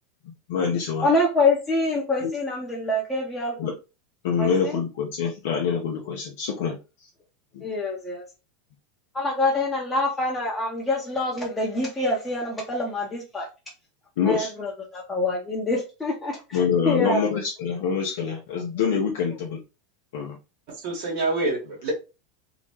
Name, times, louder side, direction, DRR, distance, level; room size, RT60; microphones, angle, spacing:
voice 1, 0.5-1.1 2.2-2.3 3.6-3.7 4.2-6.8 7.5-7.6 14.2-14.5 16.5-19.6 20.1-20.4, left 6 dB, 70° left, 0 dB, 0.5 m, -25 dB
voice 2, 1.0-3.5 4.4-4.5 7.6-8.2 9.1-13.5 14.3-14.5 14.9-16.3 16.9-17.2, left 2 dB, 15° left, -3 dB, 0.8 m, -25 dB
voice 3, 20.7-21.9, right 2 dB, 60° right, -1 dB, 1.4 m, -27 dB
2.9 x 2.1 x 2.9 m, 0.29 s
hypercardioid pair, 90°, 0 cm